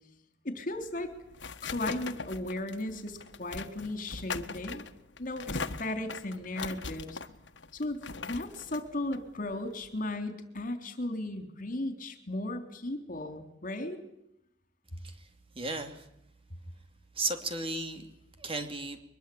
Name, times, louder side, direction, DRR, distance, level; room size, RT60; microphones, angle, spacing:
voice 1, 0.4-1.1 1.6-4.9 5.2-7.2 7.7-14.0, left 1 dB, 50° left, 8 dB, 3.7 m, -36 dB
sound 1, 0.8-10.1, left 4 dB, 75° left, 1.5 m, -41 dB
voice 2, 15.5-16.1 17.1-19.0, right 3 dB, 30° right, 7 dB, 2.9 m, -35 dB
23.5 x 22.0 x 8.7 m, 0.78 s
head